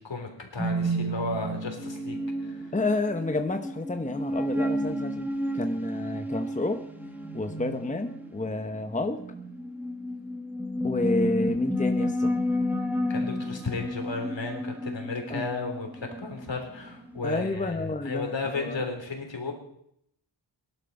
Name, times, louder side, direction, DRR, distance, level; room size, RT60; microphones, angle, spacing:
voice 1, 0.0-2.5 13.1-19.5, left 3 dB, 65° left, 3 dB, 3.5 m, -34 dB
sound 1, 0.6-17.2, equal, 5° right, 1.7 m, -31 dB
voice 2, 2.7-5.3 5.5-6.8 7.3-9.2 10.8-12.3 15.3-15.5 17.2-18.8, left 2 dB, 15° left, 6 dB, 0.9 m, -30 dB
18.0 x 11.5 x 5.3 m, 0.73 s
wide cardioid pair, 90°, 47 cm